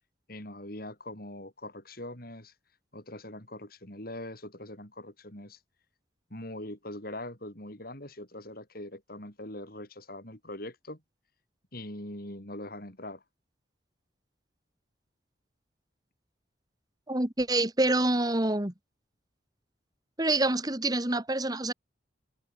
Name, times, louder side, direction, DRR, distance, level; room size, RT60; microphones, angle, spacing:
voice 1, 0.3-2.5 2.9-5.6 6.3-11.0 11.7-13.2, left 1 dB, 50° left, 6.8 m, -42 dB
voice 2, 17.1-18.7 20.2-21.7, right 2 dB, 20° right, 1.9 m, -26 dB
head